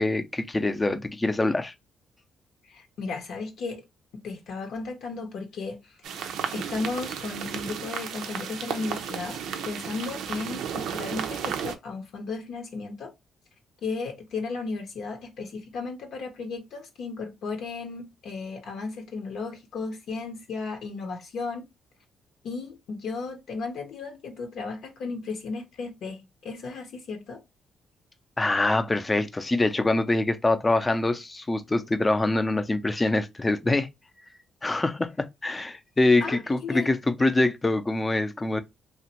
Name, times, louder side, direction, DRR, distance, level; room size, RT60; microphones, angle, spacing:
voice 1, 0.0-1.7 28.4-33.9 34.6-38.6, left 2 dB, 20° left, 0.5 m, -24 dB
voice 2, 2.6-3.8 4.2-6.0 6.5-13.1 13.8-21.7 22.4-27.4 36.2-36.9, left 4 dB, 70° left, 0.7 m, -35 dB
sound 1, 6.0-11.8, right 8 dB, 80° right, 0.5 m, -33 dB
2.9 x 2.5 x 2.9 m
cardioid pair, 85°, 0 cm